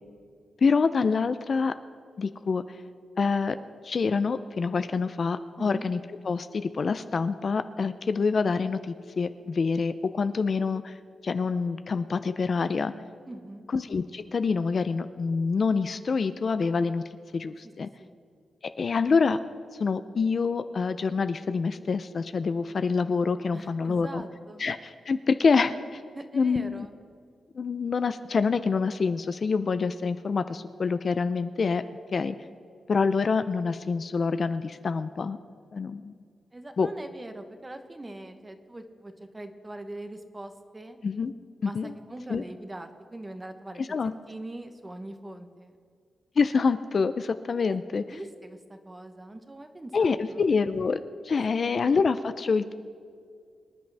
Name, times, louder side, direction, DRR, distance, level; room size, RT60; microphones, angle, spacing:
voice 1, 0.6-1.7 2.2-2.8 3.2-3.6 3.8-6.0 6.2-11.0 11.2-12.9 13.7-17.0 17.3-17.9 18.8-19.4 19.8-24.2 24.6-26.0 26.3-26.9 27.5-31.8 32.1-32.3 32.9-35.4 35.7-36.1 36.8-36.9 41.0-41.3 41.6-41.9 42.3-42.4 43.8-44.1 46.4-48.0 49.9-52.7, left 5 dB, 45° left, 11 dB, 0.4 m, -26 dB
voice 2, 13.3-13.7 18.0-18.2 23.5-24.6 26.1-26.9 36.5-41.0 41.6-43.8 44.3-45.7 47.7-47.8 48.1-50.4 51.5-51.6, right 1 dB, 15° right, 7 dB, 1.0 m, -42 dB
25.0 x 10.5 x 3.4 m, 2.2 s
wide cardioid pair, 145°, 0 cm